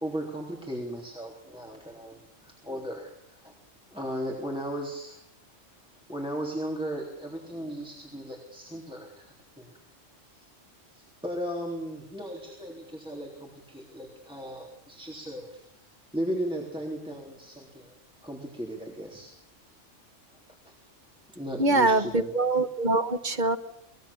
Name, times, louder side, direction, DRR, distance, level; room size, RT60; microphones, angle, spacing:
voice 1, 0.0-3.5 3.9-5.2 6.1-9.7 10.4-10.5 10.9-15.6 16.1-18.0 18.2-19.3 20.6-20.7 21.4-22.3, equal, 5° right, -1 dB, 3.5 m, -36 dB
voice 2, 21.6-23.6, right 2 dB, 40° right, 8 dB, 1.4 m, -24 dB
24.0 x 20.5 x 7.2 m, 0.76 s
omnidirectional pair, 1.3 m